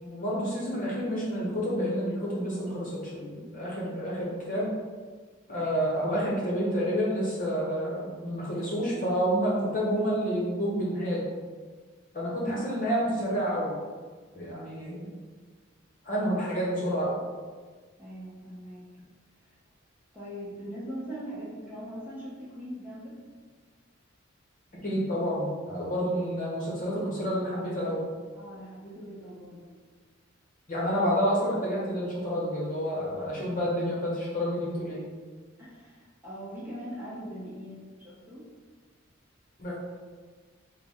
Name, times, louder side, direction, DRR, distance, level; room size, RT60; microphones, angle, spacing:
voice 1, 0.0-4.7 5.5-11.3 12.1-13.7 14.3-15.1 16.0-17.2 24.8-28.0 30.7-35.0 39.6-39.7, equal, 40° left, -6 dB, 1.0 m, -29 dB
voice 2, 18.0-18.8 20.1-23.2 28.3-29.8 30.8-31.0 35.6-38.4, equal, 10° right, -9 dB, 0.9 m, -41 dB
3.8 x 2.2 x 3.6 m, 1.5 s
head